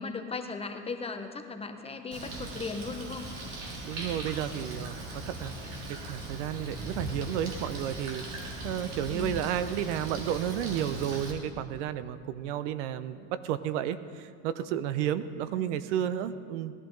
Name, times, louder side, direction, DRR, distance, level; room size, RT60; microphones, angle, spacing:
voice 1, 0.0-3.3 9.1-9.4 15.5-15.8, left 4 dB, 15° left, 5 dB, 0.9 m, -37 dB
Bird, 2.1-11.3, right 1 dB, 60° right, 2.7 m, -39 dB
voice 2, 3.8-16.7, right 10 dB, 90° right, 13 dB, 0.7 m, -32 dB
17.5 x 11.5 x 4.0 m, 2.1 s
supercardioid pair, 120°, 35 cm